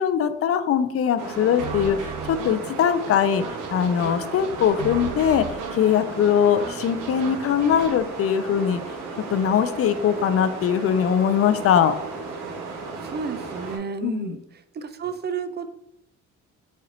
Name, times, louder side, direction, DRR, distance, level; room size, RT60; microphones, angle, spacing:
voice 1, 0.0-3.4 3.7-5.4 5.7-8.8 9.3-12.0 14.0-14.3, left 8 dB, 50° left, 10 dB, 0.5 m, -21 dB
sound 1, 1.2-13.8, right 3 dB, 70° right, 1.2 m, -35 dB
sound 2, 1.6-8.0, right 5 dB, 85° right, 0.7 m, -37 dB
voice 2, 13.0-15.7, right 5 dB, 35° right, 10 dB, 0.5 m, -32 dB
4.3 x 2.5 x 4.2 m, 0.78 s
cardioid pair, 90°, 30 cm